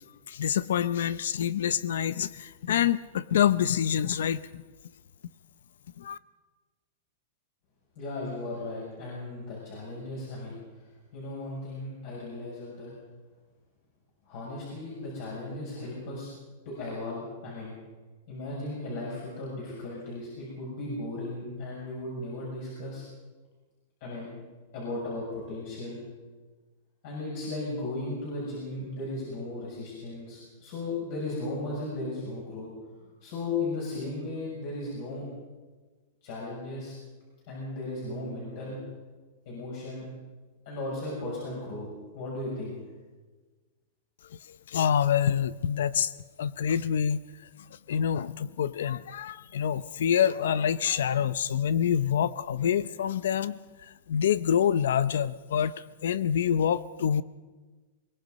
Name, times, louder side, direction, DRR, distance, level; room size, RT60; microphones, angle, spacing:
voice 1, 0.3-4.4 6.0-6.2 44.7-46.1 46.4-47.2 47.9-57.2, left 9 dB, 75° left, 17 dB, 0.6 m, -26 dB
voice 2, 7.9-10.6 11.1-12.9 14.3-16.3 16.6-17.8 18.3-23.0 24.0-24.3 24.7-26.0 27.0-32.7 33.2-35.3 36.2-36.9 37.5-38.8 39.4-40.0 40.6-41.9 42.1-42.8, left 2 dB, 40° left, -4 dB, 6.6 m, -36 dB
23.0 x 21.5 x 5.3 m, 1.3 s
supercardioid pair, 180°, 0 cm